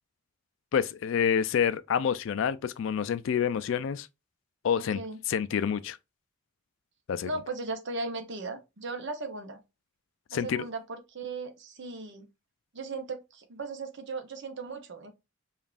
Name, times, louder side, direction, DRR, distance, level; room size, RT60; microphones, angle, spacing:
voice 1, 0.7-4.1 4.6-5.0 5.3-6.0 7.1-7.3 10.3-10.6, left 7 dB, 60° left, 0.3 m, -27 dB
voice 2, 4.8-5.2 7.2-9.6 10.3-12.3 12.7-15.1, right 3 dB, 55° right, 0.8 m, -37 dB
5.2 x 2.4 x 2.4 m
head